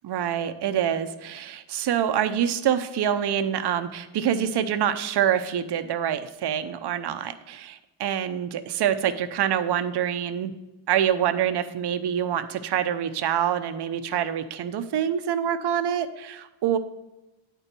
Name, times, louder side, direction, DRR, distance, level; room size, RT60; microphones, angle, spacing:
voice 1, 0.0-10.5 10.9-16.8, right 9 dB, 55° right, 10 dB, 0.8 m, -26 dB
8.8 x 4.5 x 6.7 m, 1.0 s
cardioid pair, 70°, 49 cm